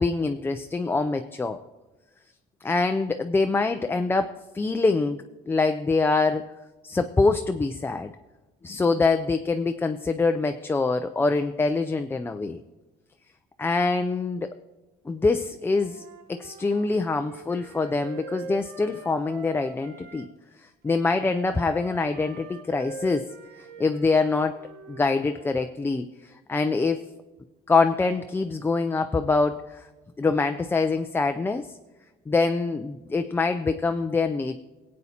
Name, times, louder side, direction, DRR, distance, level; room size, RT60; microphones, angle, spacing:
voice 1, 0.0-1.6 2.6-6.5 6.8-8.1 8.6-12.6 13.6-14.5 15.1-20.3 20.8-23.3 23.8-24.6 24.9-27.0 27.7-29.9 30.2-31.7 32.3-34.6, left 3 dB, 15° left, 8 dB, 0.4 m, -25 dB
Wind instrument woodwind instrument, 15.6-20.3 20.9-25.7, right 3 dB, 75° right, 1.0 m, -43 dB
19.0 x 8.5 x 2.8 m, 1.2 s
cardioid pair, 110°, 17 cm